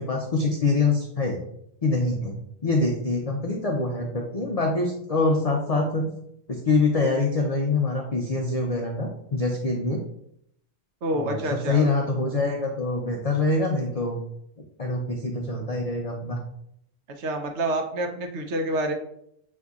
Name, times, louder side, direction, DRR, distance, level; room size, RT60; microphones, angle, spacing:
voice 1, 0.0-1.4 1.8-2.4 2.6-6.1 6.5-10.0 11.1-14.2 14.8-16.4, left 3 dB, 80° left, 0 dB, 0.3 m, -25 dB
voice 2, 11.0-11.9 17.2-18.9, right 1 dB, 65° right, 3 dB, 0.9 m, -27 dB
6.5 x 2.6 x 2.4 m, 0.73 s
omnidirectional pair, 1.4 m